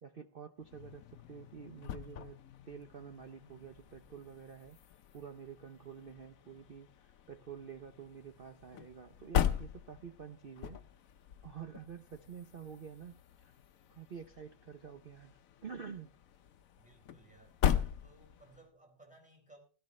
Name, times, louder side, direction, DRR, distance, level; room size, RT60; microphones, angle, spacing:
voice 1, 0.0-2.4 2.7-4.8 5.1-10.8 11.4-13.6 13.9-16.1, right 7 dB, 70° right, 0.5 m, -49 dB
sound 1, 0.6-18.7, left 9 dB, 60° left, 1.0 m, -40 dB
voice 2, 16.8-17.6 18.0-19.6, right 2 dB, 5° right, 4.0 m, -60 dB
17.0 x 12.5 x 3.2 m
omnidirectional pair, 1.9 m